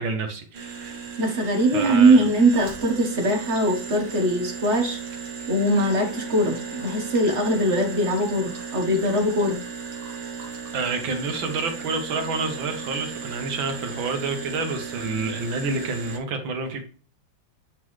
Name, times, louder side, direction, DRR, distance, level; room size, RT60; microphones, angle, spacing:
voice 1, 0.0-1.1 1.7-2.2 10.7-16.8, right 4 dB, 75° right, 1.9 m, -29 dB
sound 1, 0.5-16.2, right 5 dB, 90° right, 2.0 m, -36 dB
voice 2, 1.2-5.0 5.5-9.6, right 1 dB, 40° right, 1.3 m, -21 dB
8.9 x 3.8 x 3.1 m
omnidirectional pair, 2.2 m